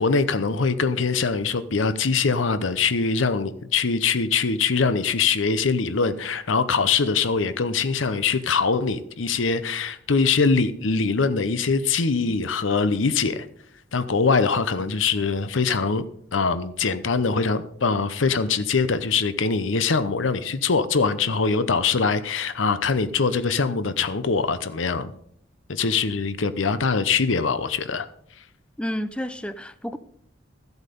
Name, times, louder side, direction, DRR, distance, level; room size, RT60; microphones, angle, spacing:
voice 1, 0.0-13.5 13.9-16.0 16.3-25.1 25.7-28.1, left 4 dB, 80° left, 0.8 m, -23 dB
voice 2, 28.8-30.0, equal, 5° left, 0.5 m, -30 dB
14.0 x 8.1 x 5.3 m
head